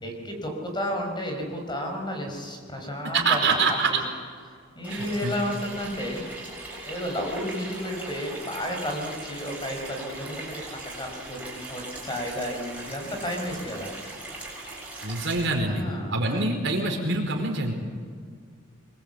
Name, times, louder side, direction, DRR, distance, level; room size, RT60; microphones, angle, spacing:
voice 1, 0.0-4.0 4.8-6.3 6.8-10.6 11.0-13.9 15.7-16.4, equal, 25° left, 2 dB, 5.1 m, -32 dB
voice 2, 3.1-3.9 4.9-5.3 15.0-15.8 16.1-17.7, right 3 dB, 65° right, 2 dB, 4.8 m, -25 dB
Water tap faucet / Sink (filling or washing), 4.8-15.5, right 2 dB, 5° right, 7.3 m, -39 dB
24.5 x 22.5 x 8.3 m, 2.1 s
head